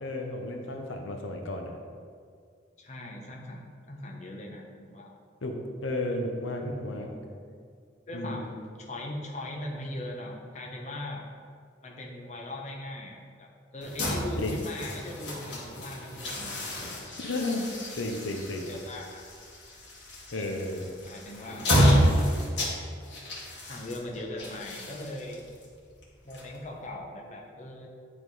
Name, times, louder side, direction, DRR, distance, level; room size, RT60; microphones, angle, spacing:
voice 1, 0.0-1.7 5.4-5.6 5.8-7.1 8.1-8.5 14.4-14.6 17.2-17.7 17.9-18.7 20.3-20.9, left 2 dB, 75° left, 3 dB, 0.7 m, -33 dB
voice 2, 2.8-5.2 6.6-7.4 8.1-11.2 11.8-16.6 17.9-18.1 18.7-19.2 20.3-20.4 21.1-21.7 23.7-25.4 26.2-27.9, left 1 dB, 35° left, -1 dB, 0.8 m, -39 dB
sound 1, 13.8-26.9, equal, 60° left, 1.6 m, -30 dB
9.7 x 3.6 x 4.7 m, 2.1 s
head